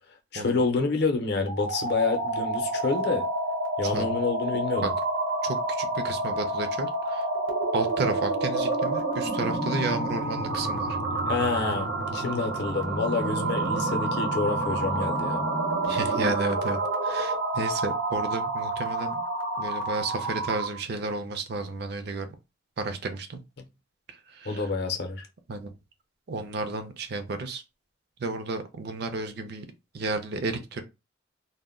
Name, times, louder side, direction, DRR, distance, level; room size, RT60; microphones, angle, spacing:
voice 1, 0.3-3.2 3.8-4.9 11.3-15.4 24.5-25.3, left 4 dB, 60° left, 0.6 m, -28 dB
sound 1, 1.5-20.8, right 2 dB, 75° right, 0.8 m, -29 dB
voice 2, 5.4-7.3 7.7-11.0 15.8-19.2 19.6-22.3 22.8-23.4 24.1-24.7 25.5-25.7 26.3-27.6 28.2-29.7 29.9-30.8, right 3 dB, 55° right, 0.4 m, -32 dB
2.1 x 2.0 x 3.5 m
head